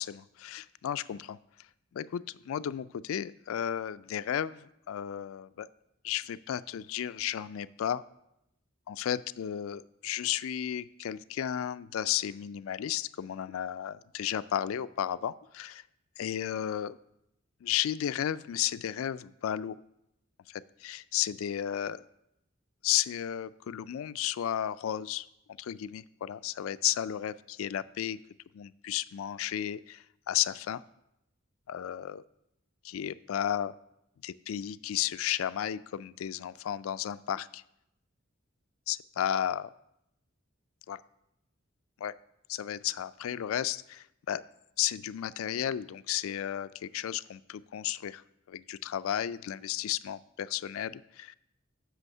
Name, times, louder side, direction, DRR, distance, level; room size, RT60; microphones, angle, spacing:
voice 1, 0.0-1.4 1.9-5.7 6.0-8.0 8.9-15.8 16.2-17.0 17.6-19.8 20.5-22.0 22.8-25.3 25.6-28.2 28.5-30.8 31.7-32.2 32.8-33.7 34.2-37.6 38.9-39.7 40.9-41.0 42.0-42.1 42.5-44.4 44.8-48.2 48.5-51.4, left 10 dB, 85° left, 16 dB, 0.3 m, -33 dB
8.1 x 6.3 x 5.4 m, 0.82 s
head